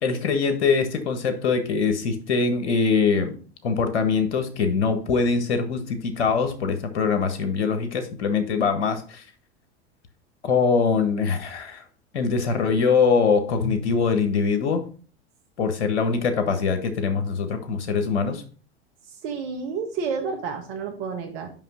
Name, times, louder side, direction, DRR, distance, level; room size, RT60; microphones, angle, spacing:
voice 1, 0.0-3.3 3.6-9.2 10.4-11.8 12.1-14.8 15.6-18.4, left 5 dB, 85° left, 7 dB, 1.5 m, -23 dB
voice 2, 19.1-21.5, right 5 dB, 60° right, 3 dB, 1.6 m, -30 dB
5.7 x 5.6 x 5.5 m, 0.40 s
hypercardioid pair, 95°, 33 cm